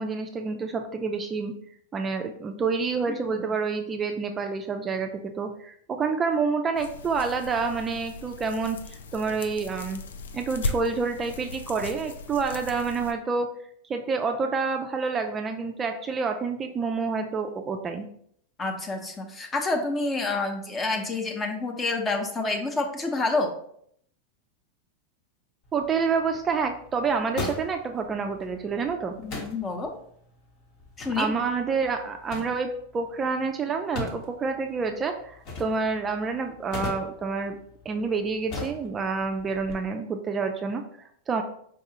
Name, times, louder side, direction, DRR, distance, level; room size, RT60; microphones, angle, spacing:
voice 1, 0.0-1.5 1.9-10.0 10.3-13.5 13.9-18.1 25.7-29.1 31.2-37.6 37.9-41.4, right 4 dB, 25° right, 4 dB, 0.3 m, -28 dB
voice 2, 3.1-3.5 18.6-23.5 29.2-29.9 31.0-31.3, left 3 dB, 20° left, 3 dB, 0.7 m, -28 dB
sound 1, 6.7-13.1, left 3 dB, 75° left, 0.3 m, -37 dB
sound 2, 25.6-39.7, left 2 dB, 50° left, 1.0 m, -41 dB
4.6 x 2.3 x 2.8 m, 0.66 s
hypercardioid pair, 95°, 0 cm